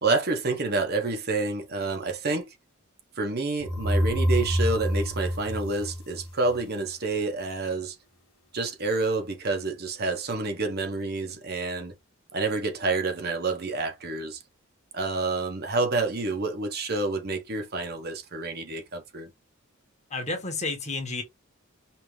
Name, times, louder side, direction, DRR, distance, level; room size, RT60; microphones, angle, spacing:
voice 1, 0.0-2.5 3.2-7.9 8.5-11.9 12.3-14.4 14.9-19.3, right 3 dB, 50° right, 1.2 m, -28 dB
sound 1, 3.6-6.5, equal, 75° left, 1.4 m, -26 dB
voice 2, 20.1-21.2, left 3 dB, 35° left, 1.6 m, -31 dB
5.6 x 2.9 x 3.3 m
head